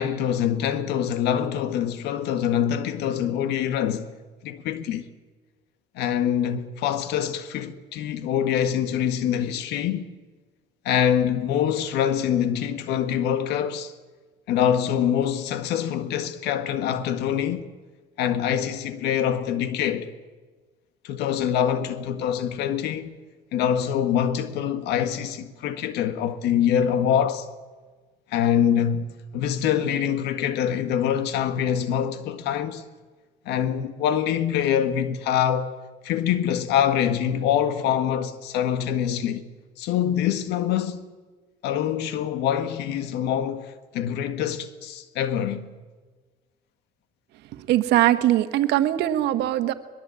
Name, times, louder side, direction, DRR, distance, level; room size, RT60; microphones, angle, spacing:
voice 1, 0.0-4.1 4.4-5.1 5.9-10.0 10.8-13.9 14.5-17.7 18.2-20.1 21.0-23.2 23.5-27.5 28.3-32.8 33.4-35.7 36.0-39.4 39.8-41.0 41.6-45.6, left 9 dB, 85° left, 1.6 m, -25 dB
voice 2, 47.7-49.7, right 13 dB, 85° right, 1.5 m, -21 dB
22.0 x 21.0 x 8.3 m
cardioid pair, 110°, 17 cm